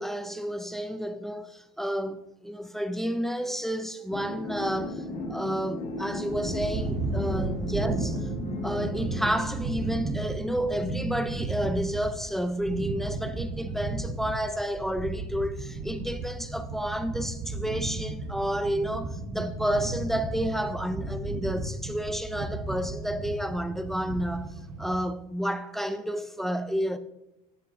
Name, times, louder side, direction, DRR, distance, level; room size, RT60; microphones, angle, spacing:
voice 1, 0.0-8.3 8.6-27.0, equal, ahead, 0.5 m, -31 dB
sound 1, 4.1-9.4, left 2 dB, 50° left, 2.0 m, -35 dB
sound 2, 6.3-25.0, right 3 dB, 45° right, 1.1 m, -34 dB
9.2 x 7.4 x 2.7 m
supercardioid pair, 90°, 17 cm